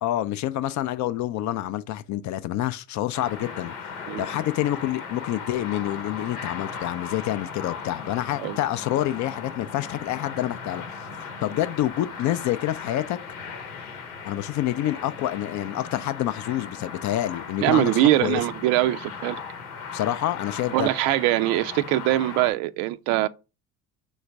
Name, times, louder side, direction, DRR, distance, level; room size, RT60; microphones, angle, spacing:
voice 1, 0.0-3.7 4.2-11.1 11.4-13.2 14.2-17.9 18.2-18.4 19.9-20.9, left 13 dB, 45° left, 0.4 m, -27 dB
sound 1, 3.1-22.5, left 6 dB, 85° left, 0.9 m, -37 dB
voice 2, 17.6-19.4 20.7-23.3, right 15 dB, 60° right, 0.5 m, -22 dB
4.0 x 3.1 x 3.3 m
hypercardioid pair, 60°, 43 cm